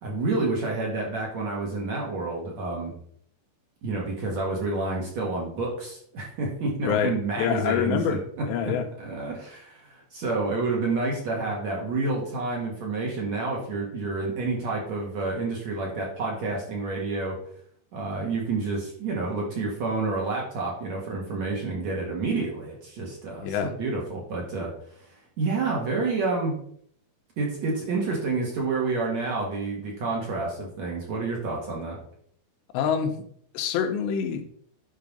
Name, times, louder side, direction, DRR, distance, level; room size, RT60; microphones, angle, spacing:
voice 1, 0.0-2.9 3.8-8.2 8.6-8.7 9.0-17.4 17.9-24.7 25.4-26.6 27.4-32.0, right 3 dB, 50° right, -2 dB, 2.4 m, -29 dB
voice 2, 6.8-8.2 8.5-8.9 23.4-23.7 32.7-33.1 33.5-34.4, left 8 dB, 85° left, 6 dB, 3.1 m, -26 dB
9.8 x 5.6 x 5.3 m, 0.64 s
omnidirectional pair, 5.0 m